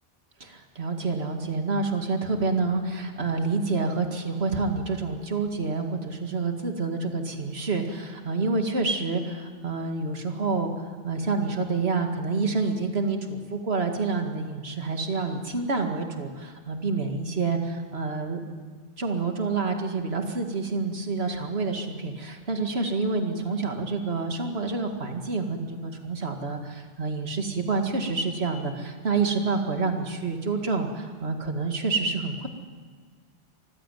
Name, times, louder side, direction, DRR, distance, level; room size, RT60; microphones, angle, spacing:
voice 1, 0.4-10.7 11.0-18.4 19.0-32.5, right 3 dB, 55° right, 4 dB, 2.3 m, -28 dB
24.5 x 15.5 x 9.2 m, 1.5 s
omnidirectional pair, 1.3 m